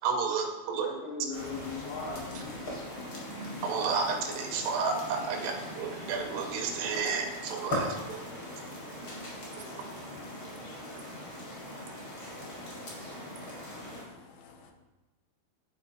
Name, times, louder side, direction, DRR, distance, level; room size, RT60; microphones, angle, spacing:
voice 1, 0.0-0.9 3.6-8.3, right 5 dB, 85° right, 3 dB, 2.9 m, -31 dB
voice 2, 0.7-3.1, left 4 dB, 75° left, -1 dB, 2.8 m, -40 dB
sound 1, 1.3-14.0, left 1 dB, 55° left, 1.4 m, -40 dB
voice 3, 13.6-14.7, left 5 dB, 90° left, 3 dB, 2.9 m, -54 dB
11.0 x 4.0 x 2.8 m, 1.1 s
omnidirectional pair, 4.8 m